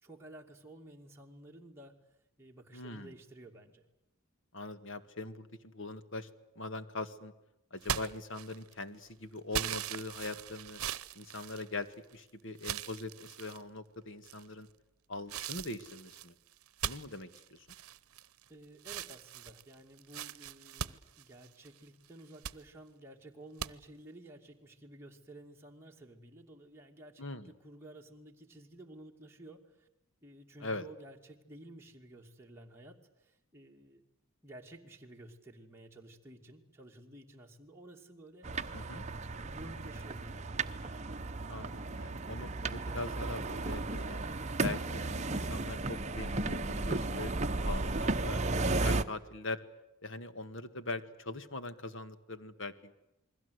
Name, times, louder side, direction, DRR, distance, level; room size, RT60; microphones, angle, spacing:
voice 1, 0.0-2.0 2.4-3.8 18.5-29.9 30.2-34.0 34.4-38.5 39.4-40.6, right 1 dB, 10° right, -1 dB, 2.5 m, -53 dB
voice 2, 2.7-3.1 4.5-6.3 6.6-7.3 7.7-10.8 11.2-11.9 12.1-14.7 15.1-16.3 16.8-17.7 27.2-27.5 30.6-30.9 38.7-39.1 41.5-44.2 44.6-47.3 47.6-49.6 50.0-52.9, left 2 dB, 60° left, 11 dB, 1.9 m, -42 dB
sound 1, 7.8-8.8 9.5-12.1 12.6-13.6 14.2-14.7 15.3-18.5 18.8-21.8 22.2-22.6 23.6-23.7, right 9 dB, 80° right, 0.9 m, -40 dB
sound 2, 38.4-49.0, right 2 dB, 30° right, 1.0 m, -34 dB
29.0 x 21.5 x 8.2 m, 0.94 s
head